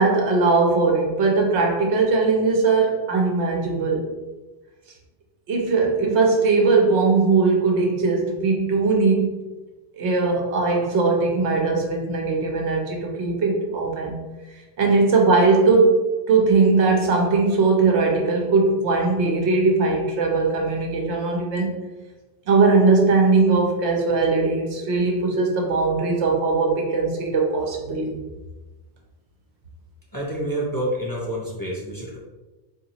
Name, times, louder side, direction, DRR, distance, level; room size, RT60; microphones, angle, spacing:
voice 1, 0.0-4.1 5.5-9.5 9.9-14.2 14.8-16.0 16.3-21.7 22.5-28.2, right 3 dB, 80° right, 0 dB, 1.1 m, -20 dB
voice 2, 30.1-32.2, right 1 dB, 20° left, -6 dB, 0.7 m, -28 dB
3.9 x 3.0 x 2.8 m, 1.1 s
omnidirectional pair, 1.1 m